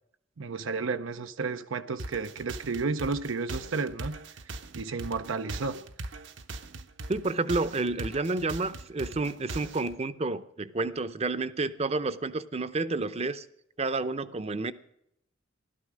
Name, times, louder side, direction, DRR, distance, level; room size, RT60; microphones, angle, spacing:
voice 1, 0.4-4.2 4.4-5.8, right 4 dB, 85° right, 0.7 m, -32 dB
sound 1, 2.0-9.9, right 2 dB, 65° right, 1.0 m, -40 dB
voice 2, 7.1-13.5 13.8-14.7, right 3 dB, 30° right, 0.7 m, -30 dB
16.0 x 12.5 x 6.3 m
head